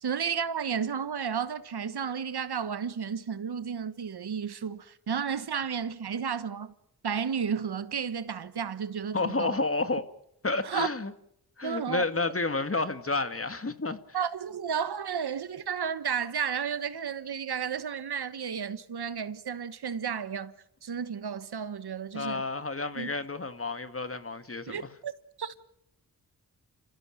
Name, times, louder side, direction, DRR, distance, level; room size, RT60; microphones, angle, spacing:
voice 1, 0.0-6.7 7.0-9.5 10.6-10.9 11.6-12.0 14.1-20.5 20.8-22.4 23.0-23.1 24.7-25.1 25.4-25.5, right 7 dB, 70° right, 1.5 m, -32 dB
voice 2, 9.1-10.1 10.4-11.1 11.6-14.0 22.1-24.9, left 3 dB, 35° left, 2.1 m, -30 dB
29.0 x 15.0 x 9.0 m
cardioid pair, 50°, 40 cm